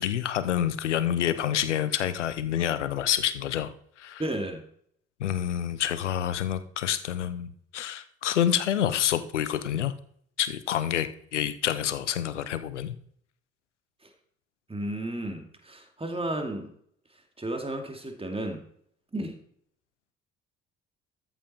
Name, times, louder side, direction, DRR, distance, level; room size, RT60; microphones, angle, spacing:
voice 1, 0.0-4.2 5.2-9.9 10.4-13.0, left 10 dB, 85° left, 14 dB, 0.8 m, -28 dB
voice 2, 4.2-4.6 14.0-14.1 14.7-16.7 17.4-18.6 19.1-19.4, right 1 dB, 15° right, 5 dB, 2.4 m, -33 dB
13.5 x 7.3 x 4.4 m, 0.64 s
figure-of-eight pair, 45°, 35 cm